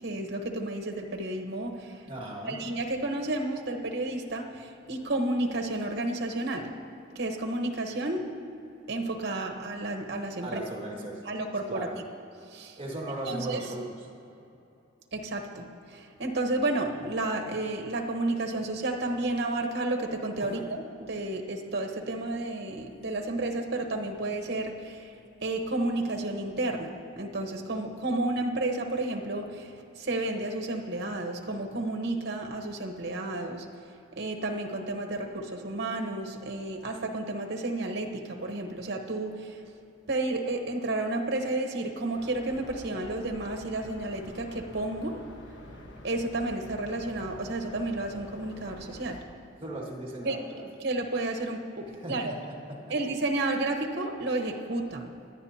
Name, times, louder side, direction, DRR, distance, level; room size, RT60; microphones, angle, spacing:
voice 1, 0.0-2.0 2.4-6.7 7.1-8.3 8.9-10.6 11.3-11.9 12.5-12.8 13.3-13.6 15.1-25.1 25.4-33.6 34.2-39.6 40.1-45.2 46.0-49.2 50.2-50.4 50.8-52.3 52.9-55.0, right 2 dB, 60° right, 3 dB, 1.1 m, -31 dB
voice 2, 2.1-2.6 9.5-9.6 10.4-11.4 11.7-12.0 12.8-14.1 20.4-20.6 49.6-50.6 51.9-52.9, right 1 dB, 30° right, -1 dB, 1.9 m, -38 dB
sound 1, 42.1-49.2, equal, 65° left, 1.4 m, -47 dB
25.5 x 10.0 x 2.8 m, 2.9 s
head